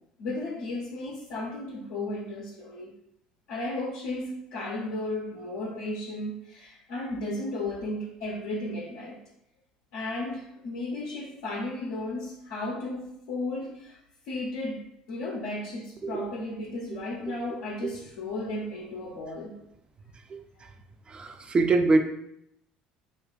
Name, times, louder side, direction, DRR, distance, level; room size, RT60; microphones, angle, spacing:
voice 1, 0.2-2.9 3.5-9.2 9.9-14.0 14.3-19.6, left 2 dB, 65° left, -3 dB, 0.5 m, -34 dB
voice 2, 20.3-20.7 21.1-22.0, right 3 dB, 25° right, 6 dB, 0.4 m, -25 dB
2.4 x 2.2 x 3.8 m, 0.77 s
figure-of-eight pair, 60°, 4 cm